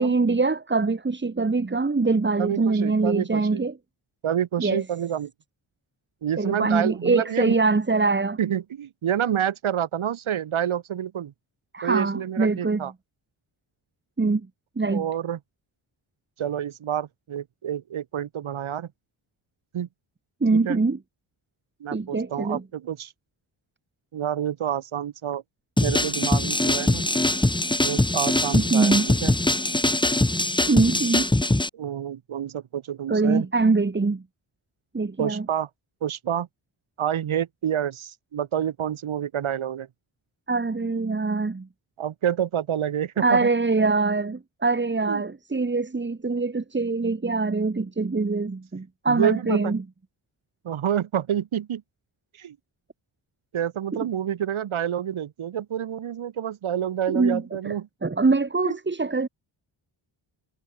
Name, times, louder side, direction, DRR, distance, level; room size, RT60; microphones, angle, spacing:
voice 1, 0.0-3.8 4.6-4.8 6.4-8.4 11.7-12.9 14.2-14.5 14.8-15.1 20.4-21.0 21.9-22.6 28.5-29.1 30.7-31.3 33.1-34.2 34.9-35.5 40.5-41.7 43.2-49.8 53.9-54.0 57.1-57.7 58.0-59.3, right 3 dB, 20° right, 2.2 m, -23 dB
voice 2, 2.4-3.6 4.2-5.3 6.2-7.6 8.4-11.3 11.8-12.9 14.9-15.4 16.4-18.9 19.7-19.9 20.5-20.8 21.8-23.1 24.1-25.4 25.8-27.1 27.8-29.4 31.7-33.5 35.2-35.7 36.0-36.5 37.0-39.9 42.0-43.5 45.1-45.2 49.1-49.8 50.6-51.8 52.3-52.6 53.5-57.9 58.6-58.8, right 9 dB, 75° right, 3.9 m, -28 dB
sound 1, 25.8-31.7, left 1 dB, 10° left, 2.0 m, -22 dB
cardioid pair, 95°, 49 cm